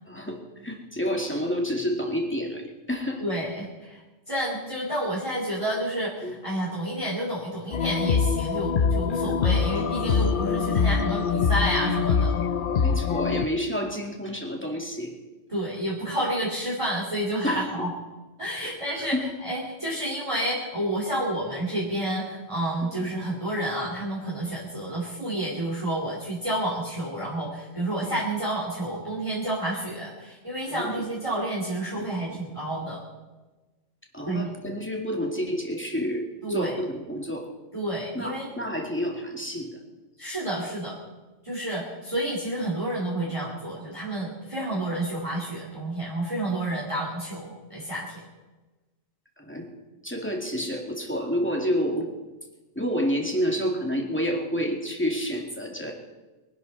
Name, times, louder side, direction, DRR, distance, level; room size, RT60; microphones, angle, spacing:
voice 1, 0.1-3.2 6.2-6.4 9.2-9.5 12.8-15.1 17.4-17.9 18.6-19.3 22.8-23.1 28.0-28.1 30.7-31.1 32.0-32.1 32.3-32.4 34.1-37.5 38.1-39.8 49.4-49.7 50.0-52.1 52.8-55.9, equal, 10° left, 1 dB, 2.4 m, -29 dB
voice 2, 3.2-4.0 4.3-12.4 15.5-17.9 18.4-19.2 19.4-33.0 34.3-34.5 36.4-36.8 37.7-38.5 40.2-41.0 41.4-48.2, right 1 dB, 25° right, -5 dB, 3.0 m, -30 dB
sound 1, 7.7-13.5, left 6 dB, 50° left, 0.7 m, -24 dB
23.5 x 11.5 x 4.1 m, 1.2 s
omnidirectional pair, 1.3 m